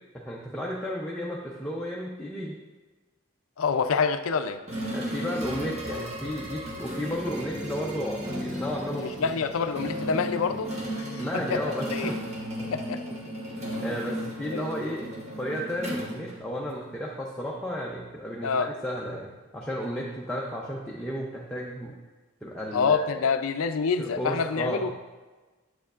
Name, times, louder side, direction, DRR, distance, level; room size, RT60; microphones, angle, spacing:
voice 1, 0.1-2.6 4.9-9.3 11.2-12.2 12.6-12.7 13.8-15.1 15.4-21.9 22.4-23.2 24.0-24.9, equal, 5° left, -5 dB, 0.5 m, -33 dB
voice 2, 3.6-4.6 9.0-11.2 11.5-12.1 12.7-13.0 14.5-14.6 18.4-18.7 22.7-24.9, left 5 dB, 80° left, 9 dB, 0.4 m, -27 dB
sound 1, 4.7-16.9, equal, 30° right, 1.0 m, -35 dB
7.6 x 6.8 x 2.4 m, 1.2 s
head